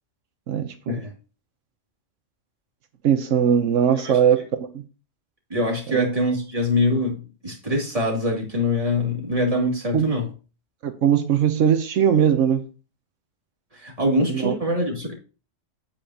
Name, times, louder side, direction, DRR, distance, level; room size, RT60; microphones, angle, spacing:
voice 1, 0.5-1.0 3.0-4.5 4.7-4.8 5.9-6.1 9.9-10.1 10.8-12.6 14.2-14.5, right 8 dB, 85° right, 1.2 m, -20 dB
voice 2, 5.5-10.3 13.7-15.1, left 1 dB, 30° right, 2.8 m, -24 dB
8.8 x 8.5 x 2.9 m
omnidirectional pair, 1.3 m